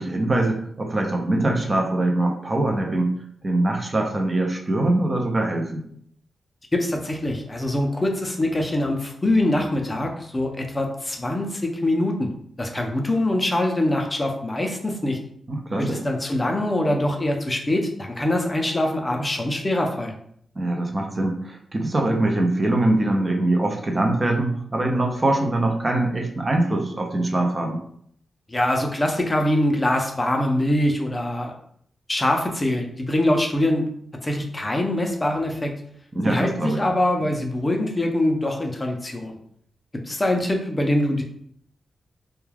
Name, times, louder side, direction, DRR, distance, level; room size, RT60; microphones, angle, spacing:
voice 1, 0.0-3.1 3.4-5.8 15.5-16.0 20.6-27.8 36.1-36.8 37.2-37.3, right 2 dB, 25° right, 2 dB, 0.5 m, -23 dB
voice 2, 6.7-12.3 12.6-15.2 15.8-20.1 28.5-31.5 32.1-33.9 34.2-35.7 36.2-39.4 40.1-41.2, left 1 dB, 20° left, 2 dB, 0.5 m, -23 dB
2.3 x 2.2 x 3.2 m, 0.66 s
wide cardioid pair, 100°, 0 cm